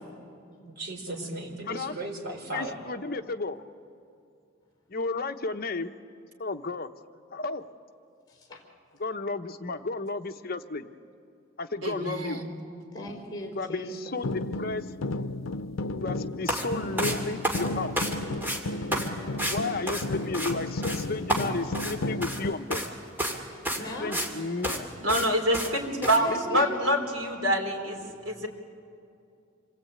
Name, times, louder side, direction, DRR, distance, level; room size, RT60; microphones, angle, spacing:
voice 1, 0.6-2.8, right 2 dB, 55° right, 0 dB, 4.4 m, -37 dB
voice 2, 1.6-1.9 2.5-3.6 4.9-5.9 6.4-6.9 7.3-7.6 9.0-10.9 11.6-12.4 13.5-14.8 16.0-18.1 19.5-22.8 24.0-24.9 26.3-26.7, left 3 dB, 50° left, 7 dB, 0.9 m, -33 dB
voice 3, 8.3-8.7 12.9-14.0 23.7-24.2 25.9-26.8 28.1-28.5, equal, 20° left, 3 dB, 4.2 m, -39 dB
voice 4, 11.8-12.5 25.0-28.5, equal, 75° right, 0 dB, 4.2 m, -27 dB
sound 1, 14.2-22.5, left 2 dB, 90° left, 0.6 m, -33 dB
sound 2, 16.5-16.7 17.0-18.2 18.4-18.6 18.9-19.1 19.4-19.6 19.9-20.5 20.8-21.0 21.3-22.4 22.7-22.9 23.2-23.4 23.7-24.3 24.6-24.8 25.1-25.3 25.5-25.7 26.0-26.2, equal, 10° right, 2.5 m, -30 dB
27.0 x 21.0 x 8.8 m, 2.5 s
head